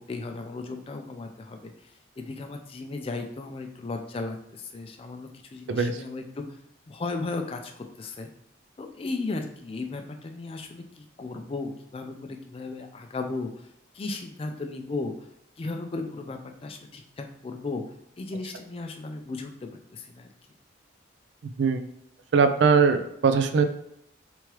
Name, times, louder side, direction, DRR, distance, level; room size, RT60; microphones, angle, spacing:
voice 1, 0.0-6.6 6.9-8.3 8.8-13.7 13.9-15.3 15.6-17.8 18.2-20.3, left 3 dB, 30° left, 5 dB, 0.3 m, -35 dB
voice 2, 5.7-6.0 21.4-21.8 22.3-23.6, right 5 dB, 70° right, 9 dB, 0.4 m, -21 dB
3.5 x 3.1 x 3.0 m, 0.77 s
head